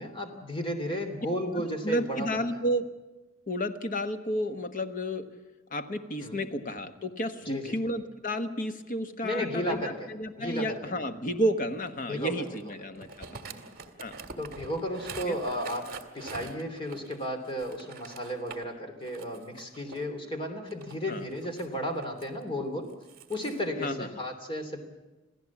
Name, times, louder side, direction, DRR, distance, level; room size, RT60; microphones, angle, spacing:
voice 1, 0.0-2.4 6.2-6.4 7.4-7.8 9.2-10.1 10.4-10.8 12.1-12.5 13.5-13.6 14.4-15.9 16.1-22.9 23.3-24.8, equal, 25° left, 5 dB, 3.0 m, -33 dB
voice 2, 1.5-2.9 3.5-5.3 5.7-13.4 14.0-14.2 15.3-15.4 21.1-21.2 23.8-24.2, equal, 45° left, 7 dB, 1.3 m, -32 dB
sound 1, 11.8-18.7 19.0-20.1 20.7-22.2 22.9-23.6, right 4 dB, 45° right, 2.0 m, -45 dB
27.0 x 16.5 x 7.3 m, 1.1 s
head